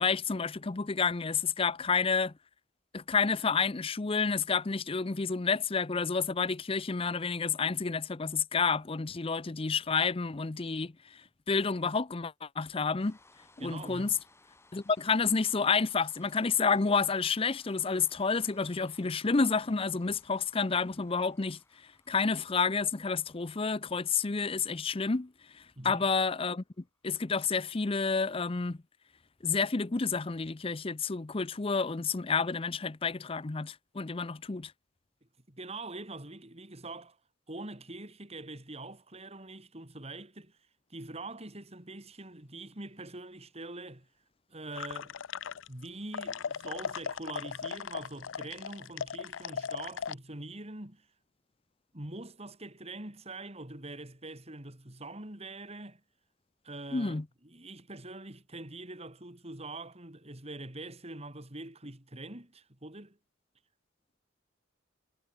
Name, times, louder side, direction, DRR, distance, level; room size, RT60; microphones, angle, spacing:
voice 1, 0.0-2.3 2.9-11.2 11.5-13.2 13.6-14.1 14.7-21.6 22.1-26.6 27.0-28.8 29.4-34.7 56.9-57.2, left 5 dB, 30° left, 0.6 m, -30 dB
sound 1, 12.9-27.1, left 2 dB, 15° left, 7.1 m, -63 dB
voice 2, 13.6-14.2 25.8-26.0 35.5-37.2 37.5-40.6 40.9-44.1 44.5-45.2 45.7-51.1 51.9-56.0 56.6-63.2, right 2 dB, 30° right, 3.5 m, -44 dB
sound 2, 44.7-45.9 46.1-50.1, left 7 dB, 80° left, 0.5 m, -37 dB
head